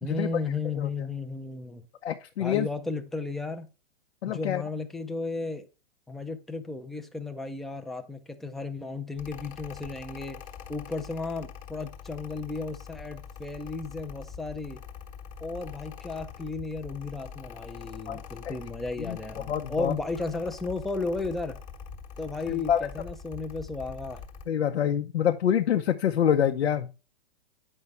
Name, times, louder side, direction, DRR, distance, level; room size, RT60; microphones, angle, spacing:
voice 1, 0.0-1.9 2.4-3.7 4.3-5.7 6.1-10.4 10.7-14.8 15.4-21.6 22.2-24.2, left 3 dB, ahead, 0.4 m, -34 dB
voice 2, 2.0-2.7 4.2-4.6 18.1-18.2 18.4-18.5 19.0-19.9 22.7-22.9 24.5-26.9, left 9 dB, 85° left, 0.8 m, -26 dB
Mechanical fan, 9.2-24.5, left 7 dB, 25° left, 1.1 m, -44 dB
8.6 x 5.5 x 3.3 m
hypercardioid pair, 125°, 33 cm